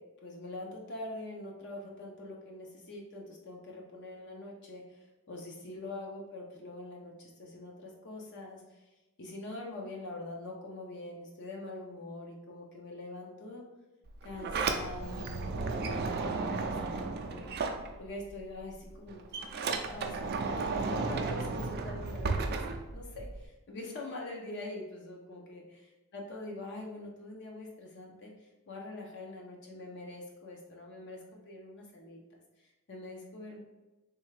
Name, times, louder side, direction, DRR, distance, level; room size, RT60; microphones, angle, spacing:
voice 1, 0.0-8.8 9.2-13.6 14.2-17.4 18.0-19.5 19.8-22.6 22.9-25.6 26.1-32.2 32.6-33.6, left 2 dB, 55° left, 0 dB, 0.6 m, -44 dB
Sliding door, 14.1-18.4 18.7-23.4, right 4 dB, 45° right, 0.4 m, -34 dB
3.5 x 3.2 x 3.3 m, 1.1 s
head